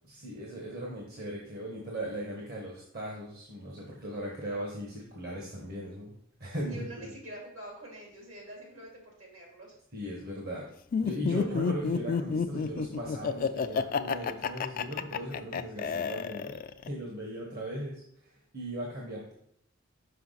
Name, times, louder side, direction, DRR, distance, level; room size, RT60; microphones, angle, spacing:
voice 1, 0.1-6.1 6.4-7.1 9.9-10.7 11.0-19.3, right 1 dB, 50° right, -2 dB, 1.2 m, -38 dB
voice 2, 6.7-9.7, right 1 dB, 75° right, -1 dB, 2.6 m, -46 dB
Laughter, 10.9-16.9, left 6 dB, 45° left, 0.3 m, -30 dB
5.8 x 5.6 x 4.0 m, 0.69 s
head